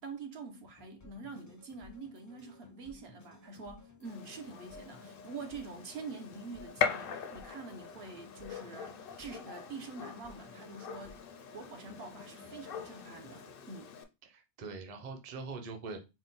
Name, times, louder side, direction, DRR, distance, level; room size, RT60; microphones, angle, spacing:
voice 1, 0.0-11.2 11.5-13.9, right 4 dB, 70° right, 1.0 m, -46 dB
sound 1, 0.8-13.7, left 3 dB, 25° left, 0.4 m, -57 dB
Gunshot gunfire, 4.0-14.0, left 7 dB, 65° left, 0.7 m, -41 dB
voice 2, 14.2-16.1, right 4 dB, 40° right, 0.7 m, -43 dB
4.1 x 2.1 x 3.8 m
omnidirectional pair, 1.1 m